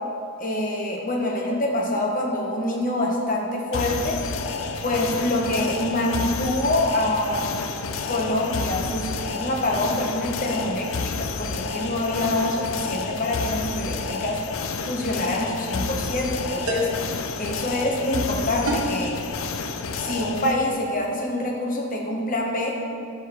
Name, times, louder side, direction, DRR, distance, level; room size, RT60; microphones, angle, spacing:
voice 1, 0.4-4.2 4.8-7.5 8.1-14.4 14.9-16.9 17.4-19.2 20.0-22.8, left 1 dB, 35° left, -1 dB, 1.0 m, -26 dB
sound 1, 3.7-20.5, left 4 dB, 70° left, 0.5 m, -30 dB
sound 2, 16.7-17.1 18.7-19.0, left 1 dB, 80° right, 1.4 m, -27 dB
12.5 x 4.5 x 3.5 m, 2.5 s
head